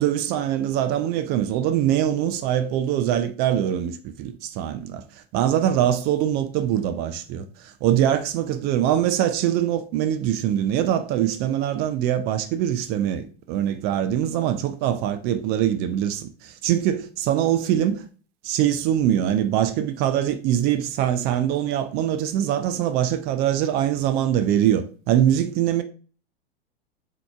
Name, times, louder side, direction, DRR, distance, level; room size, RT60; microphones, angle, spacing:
voice 1, 0.0-18.1 18.4-25.8, right 11 dB, 30° right, 0.4 m, -23 dB
7.5 x 2.9 x 2.3 m
figure-of-eight pair, 90°, 32 cm